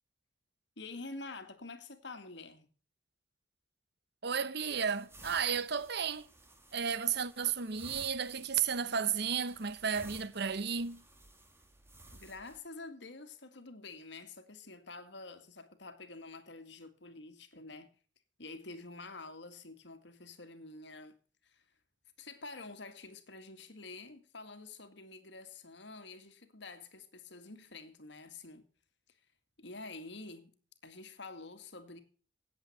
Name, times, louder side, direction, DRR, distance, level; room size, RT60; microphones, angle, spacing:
voice 1, 0.8-2.7 12.1-17.9 18.4-21.2 21.4-21.7 22.2-28.7 29.1-29.2 29.6-30.5 30.8-32.0, left 3 dB, 70° left, 2.2 m, -48 dB
voice 2, 4.2-6.3 6.7-11.0, right 7 dB, 60° right, 0.9 m, -33 dB
sound 1, 4.6-12.6, right 2 dB, 15° right, 2.3 m, -56 dB
17.5 x 8.2 x 4.5 m
head